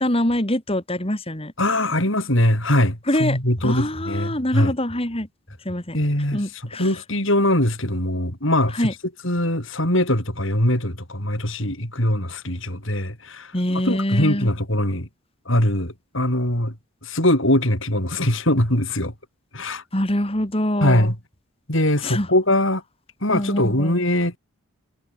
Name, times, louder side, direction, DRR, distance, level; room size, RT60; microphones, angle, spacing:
voice 1, 0.0-1.5 3.1-3.4 3.6-5.3 5.6-6.0 6.3-6.9 8.8-8.9 13.5-14.5 19.9-21.1 22.0-22.3 23.3-24.0, left 1 dB, 25° left, 2.9 m, -24 dB
voice 2, 1.6-4.7 5.9-6.4 6.8-8.9 9.2-13.5 13.9-15.1 15.5-16.8 17.0-19.1 19.5-19.8 20.8-21.2 21.7-22.8 23.2-24.4, left 1 dB, 60° left, 7.2 m, -21 dB
head